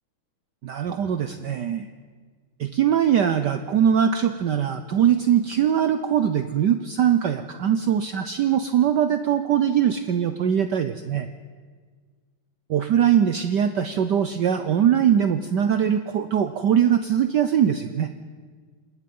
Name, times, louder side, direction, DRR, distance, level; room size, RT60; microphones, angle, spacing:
voice 1, 0.6-1.9 2.6-11.3 12.7-18.1, right 9 dB, 65° right, 9 dB, 1.2 m, -21 dB
27.5 x 20.0 x 5.4 m, 1.5 s
omnidirectional pair, 2.4 m